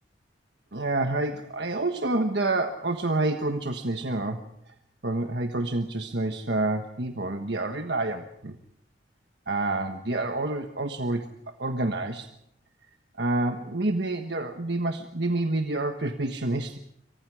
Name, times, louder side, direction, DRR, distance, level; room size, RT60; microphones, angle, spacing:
voice 1, 0.7-4.4 5.0-8.6 9.5-11.3 11.6-12.3 13.2-16.8, right 2 dB, 65° right, 5 dB, 1.5 m, -28 dB
28.5 x 24.5 x 5.0 m, 0.76 s
head